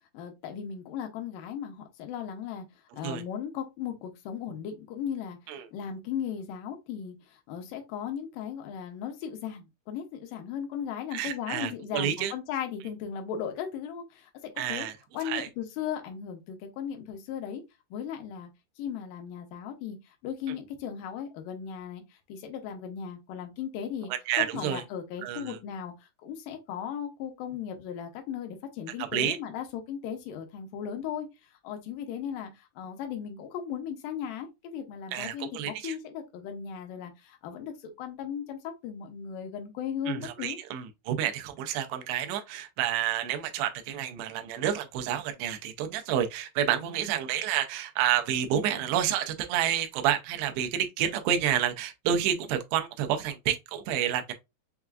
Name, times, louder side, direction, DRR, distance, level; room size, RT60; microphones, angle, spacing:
voice 1, 0.1-2.7 2.9-14.3 14.6-14.9 15.1-17.6 17.9-18.5 18.8-24.1 24.4-40.6 46.7-47.0, left 8 dB, 80° left, 2.0 m, -37 dB
voice 2, 11.1-12.3 14.6-14.9 15.2-15.5 24.3-24.8 25.2-25.6 29.1-29.4 35.1-36.0 40.1-54.3, right 10 dB, 90° right, 2.7 m, -29 dB
6.7 x 2.4 x 2.3 m
omnidirectional pair, 4.7 m